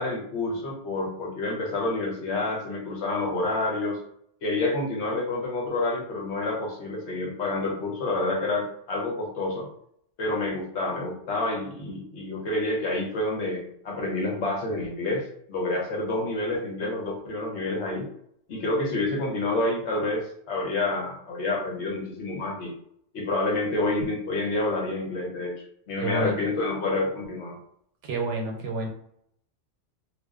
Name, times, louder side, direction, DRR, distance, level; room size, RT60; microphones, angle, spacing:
voice 1, 0.0-4.0 4.4-9.7 10.2-18.1 18.5-22.7 23.1-27.6, left 2 dB, 75° left, 0 dB, 1.0 m, -28 dB
voice 2, 26.0-26.4 28.0-28.9, right 2 dB, 90° right, 1 dB, 0.9 m, -29 dB
2.5 x 2.2 x 2.3 m, 0.70 s
omnidirectional pair, 1.2 m